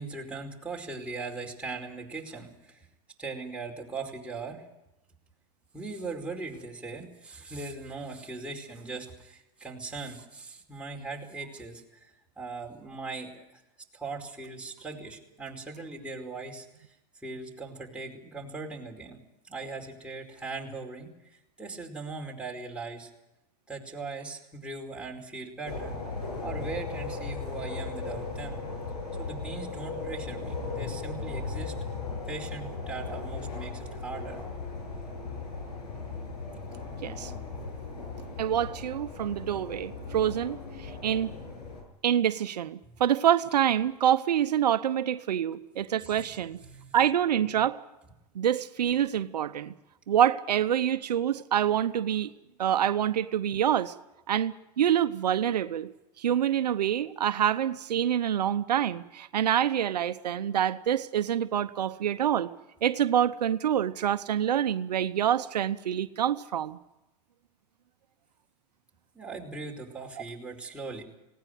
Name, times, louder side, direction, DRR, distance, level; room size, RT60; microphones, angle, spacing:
voice 1, 0.0-2.9 3.2-4.6 5.7-13.6 13.9-17.0 17.2-19.2 19.4-23.1 23.7-26.0 26.4-28.6 29.2-31.7 32.3-34.4 42.8-42.9 46.0-47.0 69.1-71.0, right 3 dB, 5° right, -1 dB, 4.8 m, -40 dB
sound 1, 25.6-41.8, left 4 dB, 85° left, 7.9 m, -37 dB
voice 2, 38.4-41.3 42.0-46.6 46.9-47.8 48.3-49.7 50.1-52.3 52.6-53.9 54.3-55.9 56.2-62.5 62.8-66.8, right 10 dB, 90° right, 11 dB, 0.9 m, -26 dB
19.0 x 17.5 x 9.4 m, 0.92 s
hypercardioid pair, 110°, 20 cm